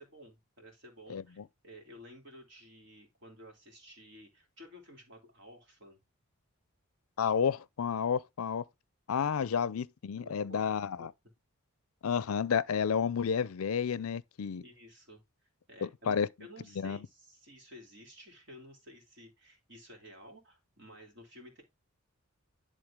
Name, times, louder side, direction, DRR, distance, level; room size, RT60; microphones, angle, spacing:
voice 1, 0.0-6.0 10.2-11.1 14.6-15.2 15.7-21.6, equal, 55° right, 2.8 m, -53 dB
voice 2, 7.2-8.6 9.1-11.1 12.0-14.6 15.8-16.3 16.8-17.0, left 7 dB, 75° left, 0.4 m, -31 dB
11.0 x 3.7 x 3.6 m
head